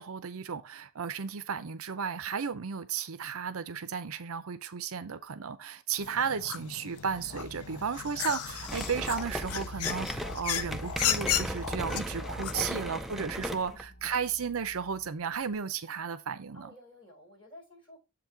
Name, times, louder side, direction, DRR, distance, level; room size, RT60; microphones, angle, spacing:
voice 1, 0.0-16.7, right 6 dB, 70° right, 0.6 m, -34 dB
sound 1, 6.0-12.7, left 9 dB, 80° left, 0.6 m, -35 dB
sound 2, 7.0-15.6, right 1 dB, 40° left, 1.3 m, -46 dB
sound 3, 8.7-13.8, equal, ahead, 0.4 m, -37 dB
voice 2, 12.5-13.1 13.7-13.9 16.5-18.0, left 1 dB, 20° left, 4.4 m, -53 dB
7.3 x 4.0 x 4.6 m
head